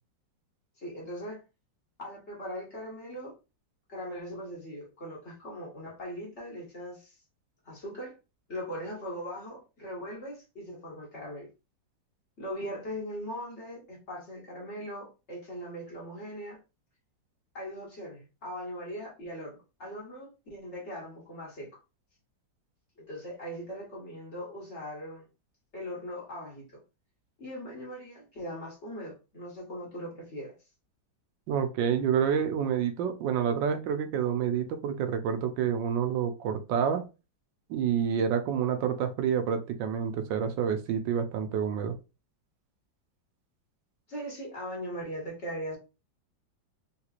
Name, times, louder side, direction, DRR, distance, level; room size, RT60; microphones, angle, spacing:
voice 1, 0.8-1.4 2.0-3.3 3.9-7.1 7.6-8.2 8.5-11.5 12.4-16.6 17.5-21.8 23.0-25.3 25.7-26.8 27.4-30.5 44.1-45.8, equal, 40° left, 1.6 m, -40 dB
voice 2, 31.5-37.1 37.7-41.9, right 8 dB, 85° right, 1.3 m, -28 dB
3.8 x 2.9 x 2.4 m
omnidirectional pair, 2.0 m